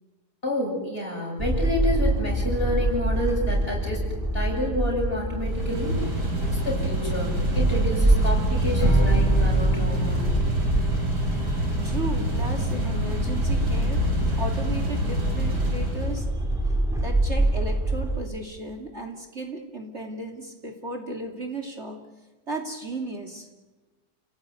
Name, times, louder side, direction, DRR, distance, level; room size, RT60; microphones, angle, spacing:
voice 1, 0.4-4.0 4.3-6.2 6.6-10.3, left 1 dB, 35° left, -1 dB, 8.2 m, -29 dB
sound 1, 1.4-18.2, right 1 dB, ahead, 3.1 m, -25 dB
sound 2, 5.4-16.3, equal, 90° right, 5.9 m, -28 dB
Strum, 8.8-15.1, right 1 dB, 15° left, 5.8 m, -33 dB
voice 2, 11.2-14.1 14.4-16.8 17.0-22.0 22.5-23.5, right 2 dB, 40° right, 3 dB, 2.8 m, -35 dB
30.0 x 17.5 x 9.6 m, 1.2 s
omnidirectional pair, 1.7 m